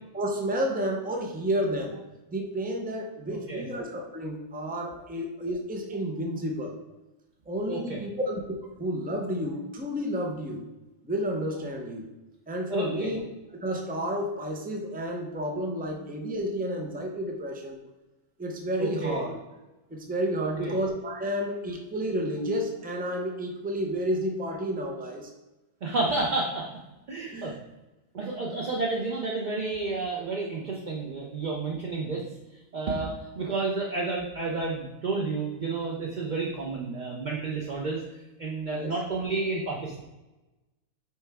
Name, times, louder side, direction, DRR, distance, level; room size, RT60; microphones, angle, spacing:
voice 1, 0.1-1.9 2.3-6.7 7.5-10.6 11.0-12.1 12.5-13.2 13.6-17.8 18.4-19.3 19.9-25.3 27.3-27.6 38.7-38.9, equal, 15° right, 2 dB, 0.3 m, -31 dB
voice 2, 3.3-3.6 7.7-8.0 12.7-13.1 18.8-19.2 20.6-20.8 25.8-26.7 27.1-27.5 28.1-32.2 32.7-33.1 33.3-38.0 38.4-40.0, right 3 dB, 45° right, -3 dB, 0.7 m, -30 dB
6.2 x 4.5 x 3.5 m, 1.0 s
omnidirectional pair, 1.6 m